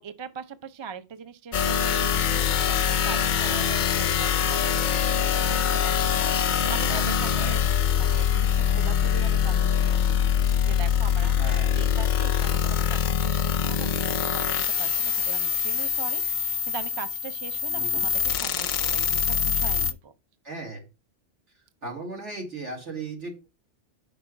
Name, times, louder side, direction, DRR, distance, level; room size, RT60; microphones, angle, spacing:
voice 1, 0.0-7.6 7.9-13.4 13.6-20.1, right 6 dB, 40° right, 0.4 m, -41 dB
sound 1, 1.5-19.9, left 8 dB, 55° left, 0.5 m, -24 dB
voice 2, 3.4-3.9 6.9-7.1 7.3-7.5 11.4-11.7 17.7-18.1 20.4-20.8 21.8-23.5, right 2 dB, 70° right, 2.6 m, -36 dB
5.4 x 4.5 x 5.9 m
omnidirectional pair, 1.2 m